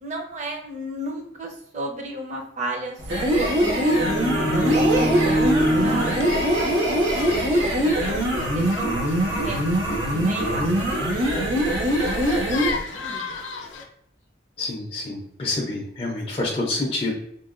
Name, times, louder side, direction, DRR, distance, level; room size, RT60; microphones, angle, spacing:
voice 1, 0.0-9.1 9.4-9.7 10.1-13.3, right 1 dB, 40° right, 1 dB, 0.6 m, -34 dB
sound 1, 3.0-12.8, right 1 dB, 85° right, 1.1 m, -23 dB
sound 2, 3.5-7.4, equal, 65° right, 0.8 m, -25 dB
sound 3, 5.1-13.9, left 4 dB, 90° left, 0.5 m, -37 dB
voice 2, 14.6-17.1, left 2 dB, 30° left, -3 dB, 0.4 m, -27 dB
3.6 x 2.2 x 2.4 m, 0.70 s
head